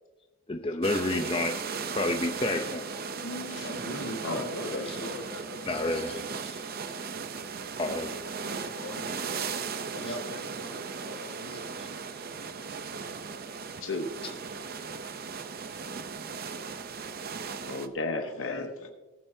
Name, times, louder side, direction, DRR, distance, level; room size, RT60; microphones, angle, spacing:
voice 1, 0.5-1.6 1.9-2.9 4.9-5.0 5.7-6.1 7.8-8.1 10.1-10.2 11.5-11.9 14.2-14.3, left 2 dB, 25° left, 6 dB, 0.6 m, -30 dB
sound 1, 0.8-17.9, right 5 dB, 45° right, 0.6 m, -37 dB
voice 2, 3.1-6.0 7.4-7.5 8.1-9.2 9.9-12.5 12.9-13.1 18.2-18.9, left 2 dB, 85° left, 2 dB, 1.8 m, -41 dB
voice 3, 4.2-4.9 13.6-14.1 17.6-18.7, left 2 dB, 60° left, 3 dB, 1.0 m, -34 dB
19.0 x 9.1 x 2.7 m, 1.2 s
head